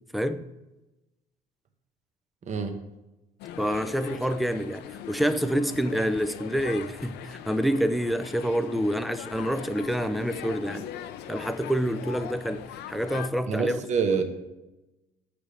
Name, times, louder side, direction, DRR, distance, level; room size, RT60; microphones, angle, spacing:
voice 1, 0.1-0.4 3.6-10.9 11.3-13.8, equal, ahead, 0.4 m, -27 dB
voice 2, 2.5-2.8 13.5-14.2, right 5 dB, 45° right, 1.0 m, -26 dB
sound 1, 3.4-13.3, left 10 dB, 80° left, 0.5 m, -41 dB
7.5 x 3.4 x 6.1 m
cardioid pair, 110°, 17 cm